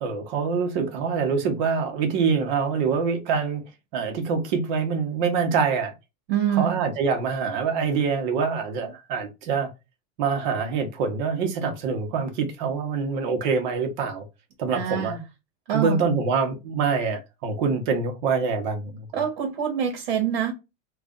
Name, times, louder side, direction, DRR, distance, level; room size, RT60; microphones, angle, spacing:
voice 1, 0.0-3.6 3.9-5.9 6.6-9.7 10.2-14.2 14.6-15.2 15.7-19.0, right 5 dB, 50° right, 1.0 m, -25 dB
voice 2, 6.3-6.8 14.7-15.2 15.7-16.0 19.1-20.5, right 9 dB, 65° right, 1.2 m, -25 dB
3.2 x 2.4 x 3.8 m
supercardioid pair, 175°, 31 cm